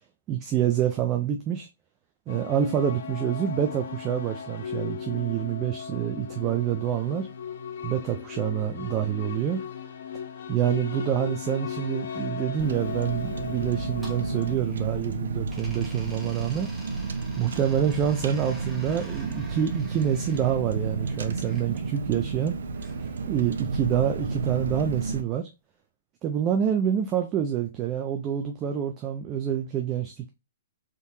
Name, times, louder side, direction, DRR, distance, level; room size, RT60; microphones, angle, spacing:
voice 1, 0.3-1.7 2.3-7.3 7.8-9.6 10.5-16.7 17.4-22.6 23.3-25.5 26.2-30.3, right 10 dB, 20° right, 0.4 m, -27 dB
sound 1, 2.3-14.6, left 7 dB, 60° left, 0.8 m, -37 dB
Car, 12.6-25.2, right 4 dB, 80° right, 0.5 m, -32 dB
sound 2, 13.7-15.1 15.5-21.7 22.7-23.9, right 1 dB, 5° right, 0.9 m, -49 dB
3.6 x 2.8 x 2.7 m
hypercardioid pair, 160°, 0 cm